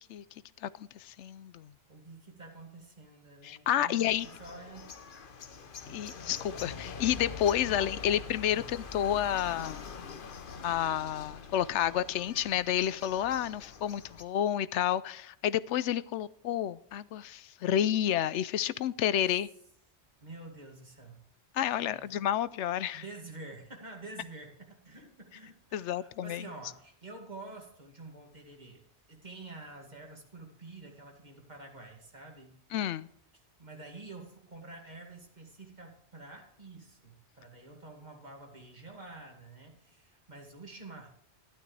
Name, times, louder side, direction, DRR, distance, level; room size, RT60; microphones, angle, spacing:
voice 1, 0.6-1.7 3.4-4.3 5.9-9.8 10.6-19.5 21.5-23.0 25.7-26.4 32.7-33.1, left 11 dB, 90° left, 0.9 m, -30 dB
voice 2, 1.9-4.9 7.7-8.2 8.5-8.8 20.2-21.2 21.8-22.1 22.9-32.6 33.6-41.1, right 2 dB, 40° right, 2.4 m, -48 dB
sound 1, 4.0-14.2, left 5 dB, 50° left, 1.0 m, -44 dB
12.5 x 11.5 x 3.3 m
omnidirectional pair, 1.2 m